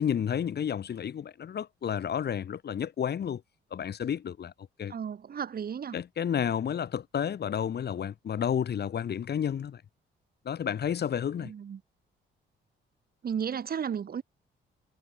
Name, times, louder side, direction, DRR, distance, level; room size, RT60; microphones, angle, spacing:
voice 1, 0.0-3.4 3.7-4.5 4.8-4.9 5.9-9.8 10.4-11.5, left 8 dB, 55° left, 2.9 m, -31 dB
voice 2, 4.9-6.0 11.4-11.8 13.2-14.2, right 7 dB, 50° right, 2.5 m, -34 dB
cardioid pair, 90°, 20 cm